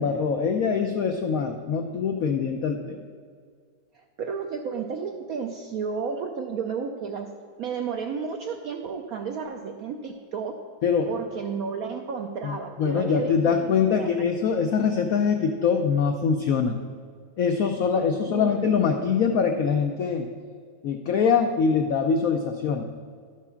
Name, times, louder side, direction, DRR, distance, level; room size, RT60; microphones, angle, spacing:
voice 1, 0.0-3.0 10.8-11.1 12.4-16.8 17.4-20.3 20.8-22.9, left 6 dB, 85° left, 5 dB, 0.7 m, -23 dB
voice 2, 4.2-7.3 7.6-10.6 11.1-14.1 18.2-18.6, right 6 dB, 75° right, 4 dB, 0.8 m, -32 dB
12.0 x 4.8 x 5.6 m, 2.1 s
omnidirectional pair, 2.1 m